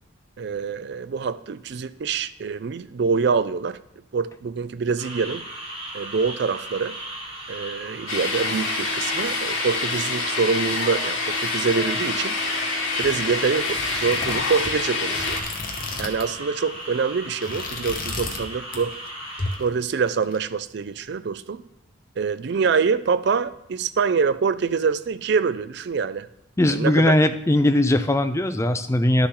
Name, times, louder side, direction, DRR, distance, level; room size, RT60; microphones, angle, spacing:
voice 1, 0.4-3.8 4.1-5.5 5.9-6.9 7.5-12.4 13.0-15.4 16.0-19.0 19.6-21.6 22.2-26.3 26.7-27.1, right 5 dB, 55° right, 14 dB, 0.4 m, -25 dB
sound 1, 5.0-19.6, right 1 dB, 30° right, 1.8 m, -37 dB
sound 2, 8.1-15.4, left 3 dB, 80° left, 1.9 m, -26 dB
sound 3, 13.0-16.4 16.7-16.9 17.3-18.5 18.7-19.1 19.4-20.4, left 3 dB, 45° left, 1.1 m, -33 dB
voice 2, 26.6-29.3, left 1 dB, 15° left, 9 dB, 0.4 m, -19 dB
11.0 x 6.9 x 3.8 m, 0.84 s
head